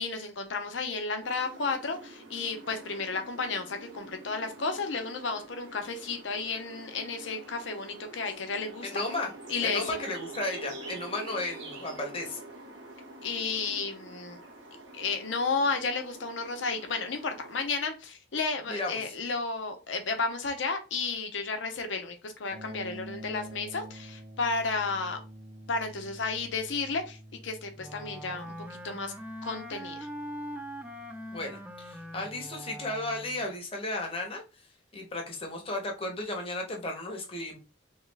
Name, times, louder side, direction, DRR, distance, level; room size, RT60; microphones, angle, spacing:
voice 1, 0.0-9.0 9.5-10.0 13.2-14.4 14.9-25.2 25.7-27.2 27.4-29.1 29.4-30.1, left 4 dB, 80° left, 5 dB, 0.7 m, -32 dB
sound 1, 1.2-17.7, right 2 dB, 80° right, 1.1 m, -46 dB
voice 2, 8.8-9.3 9.6-12.4 18.7-19.0 31.3-34.4 34.9-37.6, left 2 dB, 30° left, 2 dB, 0.8 m, -34 dB
sound 2, 22.5-32.6, right 1 dB, 50° right, 1.4 m, -49 dB
Wind instrument woodwind instrument, 27.8-33.5, equal, 10° right, 0.3 m, -42 dB
3.0 x 2.3 x 3.3 m, 0.30 s
head